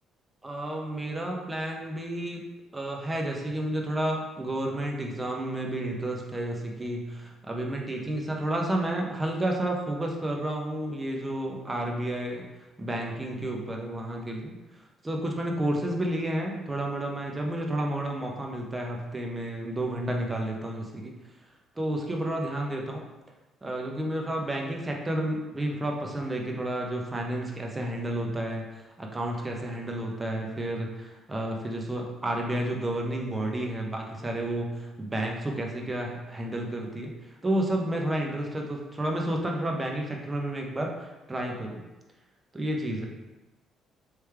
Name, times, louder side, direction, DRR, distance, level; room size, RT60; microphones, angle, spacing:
voice 1, 0.4-2.4 2.7-12.5 12.8-14.5 15.0-21.1 21.8-23.0 23.6-37.1 37.4-41.8 42.5-43.1, right 1 dB, 20° right, 0 dB, 0.8 m, -31 dB
3.3 x 3.1 x 3.4 m, 1.1 s
supercardioid pair, 70°, 0 cm